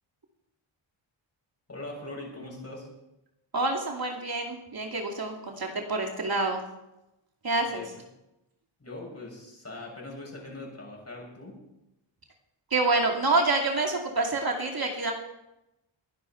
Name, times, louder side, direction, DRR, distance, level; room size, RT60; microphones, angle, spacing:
voice 1, 1.7-2.9 7.6-7.9 8.8-11.7, left 2 dB, 30° left, -1 dB, 7.5 m, -41 dB
voice 2, 3.5-6.6 7.4-7.8 12.7-15.1, right 3 dB, 45° right, 1 dB, 2.6 m, -27 dB
21.5 x 11.0 x 4.5 m, 0.91 s
cardioid pair, 80°, 50 cm